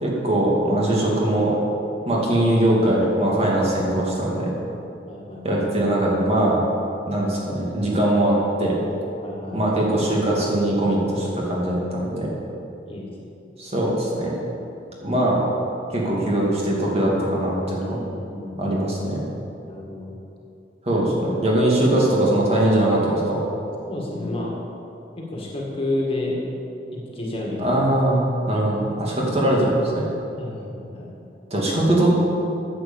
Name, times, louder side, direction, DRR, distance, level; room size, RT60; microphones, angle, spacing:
voice 1, 0.0-1.5 2.1-4.5 5.4-6.6 7.1-8.8 9.5-12.3 13.6-14.3 15.0-15.4 15.9-17.9 18.6-19.2 20.9-23.4 27.6-29.7 29.9-30.1 31.5-32.1, right 1 dB, 35° right, -4 dB, 2.5 m, -21 dB
voice 2, 5.1-5.4 9.2-9.6 12.9-13.1 17.9-18.8 19.6-20.2 23.8-24.6 25.2-26.4 26.9-27.8 30.4-31.1, left 2 dB, 30° left, -3 dB, 2.0 m, -30 dB
10.0 x 7.9 x 7.2 m, 2.8 s
head